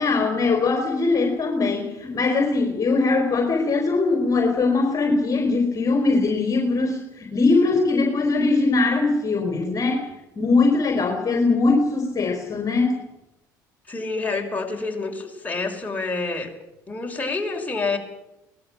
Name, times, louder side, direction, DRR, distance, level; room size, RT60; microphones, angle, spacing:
voice 1, 0.0-10.0 10.4-13.0, left 3 dB, 30° left, 4 dB, 4.0 m, -21 dB
voice 2, 13.9-16.5 16.9-18.0, left 3 dB, 15° left, 1 dB, 5.5 m, -28 dB
24.0 x 19.5 x 7.6 m, 0.93 s
figure-of-eight pair, 60°, 10 cm